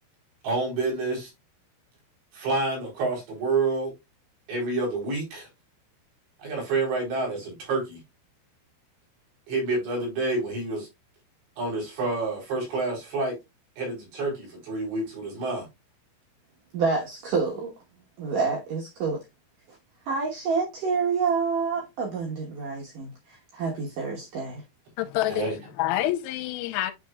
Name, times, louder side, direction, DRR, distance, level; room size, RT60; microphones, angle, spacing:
voice 1, 0.4-1.3 2.3-3.9 4.5-5.5 6.4-8.0 9.5-10.9 11.6-13.4 13.8-15.7 25.3-25.6, right 3 dB, 60° right, 5.7 m, -28 dB
voice 2, 16.7-17.7 18.2-19.2 19.7-19.8 20.1-24.6, right 5 dB, 85° right, 1.8 m, -28 dB
voice 3, 25.0-26.9, left 14 dB, 90° left, 3.3 m, -27 dB
10.5 x 4.1 x 2.3 m
omnidirectional pair, 5.9 m